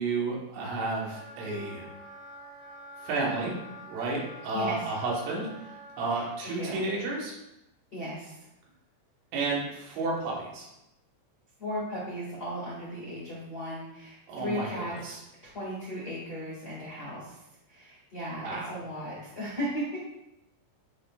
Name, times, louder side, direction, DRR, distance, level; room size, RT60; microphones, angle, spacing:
voice 1, 0.0-1.9 3.0-3.5 3.9-7.4 9.3-10.7 14.3-15.2 18.4-18.9, right 3 dB, 80° right, -4 dB, 3.8 m, -32 dB
Wind instrument woodwind instrument, 0.9-6.2, equal, 25° left, 0.7 m, -47 dB
voice 2, 6.4-6.8 7.9-8.4 11.6-17.4 17.7-20.0, equal, 75° left, -7 dB, 0.9 m, -36 dB
11.0 x 4.1 x 2.4 m, 0.90 s
omnidirectional pair, 5.3 m